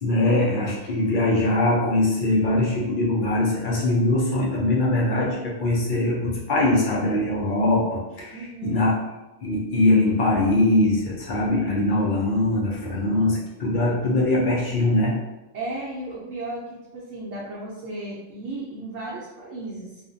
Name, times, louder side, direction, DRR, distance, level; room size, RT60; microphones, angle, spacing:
voice 1, 0.0-8.9 9.4-15.2, left 2 dB, 60° left, -4 dB, 0.5 m, -22 dB
voice 2, 8.3-8.8 15.5-20.0, right 2 dB, 65° right, -7 dB, 0.8 m, -34 dB
2.4 x 2.2 x 2.5 m, 1.0 s
omnidirectional pair, 1.3 m